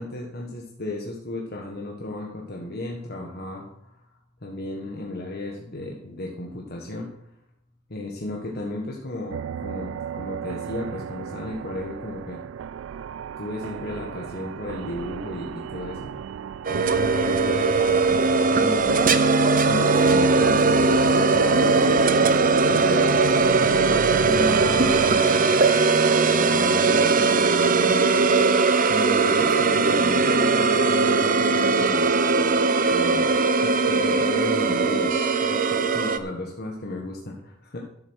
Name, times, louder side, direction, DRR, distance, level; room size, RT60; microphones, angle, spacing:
voice 1, 0.0-3.9 4.4-7.1 7.9-12.4 13.4-16.1 16.7-19.0 19.6-22.0 22.7-23.2 23.6-25.5 26.1-28.4 28.9-32.1 32.9-33.3 33.6-35.1 35.4-37.8, left 2 dB, 50° left, -1 dB, 1.4 m, -34 dB
sound 1, 9.3-25.2, right 8 dB, 70° right, 0.3 m, -31 dB
sound 2, 16.7-36.2, right 3 dB, 45° right, 0.7 m, -20 dB
11.0 x 8.1 x 6.3 m, 0.79 s
head